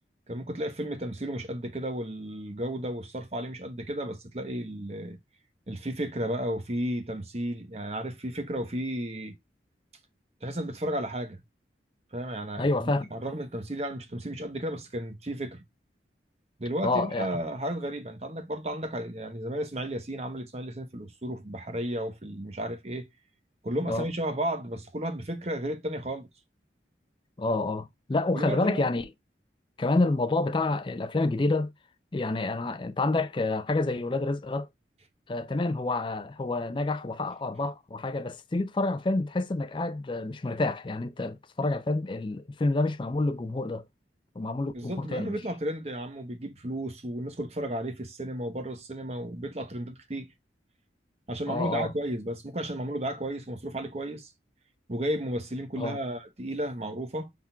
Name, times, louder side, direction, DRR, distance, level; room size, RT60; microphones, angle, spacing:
voice 1, 0.3-5.2 5.7-9.3 10.4-11.4 12.1-15.6 16.6-23.1 23.6-26.3 28.3-28.9 44.7-50.3 51.3-54.3 54.9-57.3, right 1 dB, 35° right, 0.9 m, -33 dB
voice 2, 12.6-13.1 16.8-17.3 23.8-24.0 27.4-29.1 29.8-31.7 32.1-34.7 35.3-43.8 44.4-45.4 51.5-51.9 55.8-56.0, left 2 dB, 25° left, 0.4 m, -28 dB
5.7 x 3.7 x 2.3 m
head